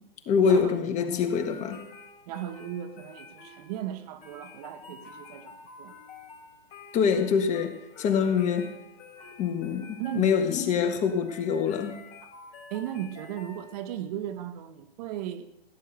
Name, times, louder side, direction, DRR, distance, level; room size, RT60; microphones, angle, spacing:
voice 1, 0.3-1.8 6.9-8.7 9.4-11.9, left 6 dB, 25° left, 7 dB, 1.6 m, -25 dB
sound 1, 1.3-14.1, left 5 dB, 40° left, 3.5 m, -49 dB
voice 2, 2.3-5.9 10.0-10.3 12.7-15.5, right 11 dB, 40° right, 10 dB, 1.2 m, -36 dB
16.5 x 9.8 x 6.8 m, 0.82 s
hypercardioid pair, 130°, 30 cm